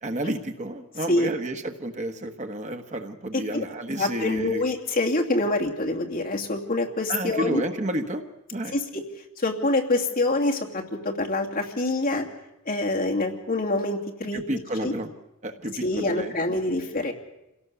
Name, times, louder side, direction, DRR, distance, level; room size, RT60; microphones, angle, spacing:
voice 1, 0.0-4.6 7.1-8.2 8.5-8.7 14.3-15.1 15.4-16.6, right 1 dB, 35° right, 6 dB, 1.3 m, -31 dB
voice 2, 3.3-3.6 4.0-7.6 8.7-9.0 9.4-12.3 12.7-14.4 14.8-14.9 15.8-17.1, left 2 dB, 45° left, 0 dB, 2.6 m, -26 dB
27.0 x 17.5 x 6.9 m, 0.93 s
head